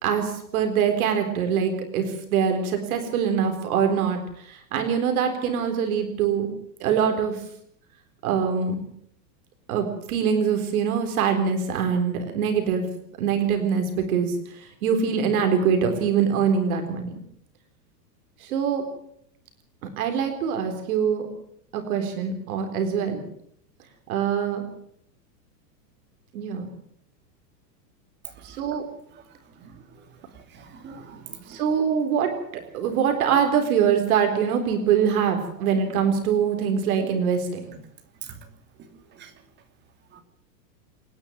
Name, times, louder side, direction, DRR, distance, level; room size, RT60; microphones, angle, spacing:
voice 1, 0.0-6.5 6.8-7.4 8.2-8.8 9.7-12.8 13.2-17.1 18.4-18.8 20.0-21.2 21.7-23.2 24.1-24.6 26.3-26.7 28.4-28.8 31.5-32.3 32.7-37.8, right 7 dB, 55° right, 5 dB, 4.1 m, -24 dB
voice 2, 30.5-31.6 39.2-39.3 40.1-40.2, right 6 dB, 20° right, 4 dB, 2.9 m, -44 dB
27.5 x 10.5 x 9.4 m, 0.71 s
supercardioid pair, 170°, 50 cm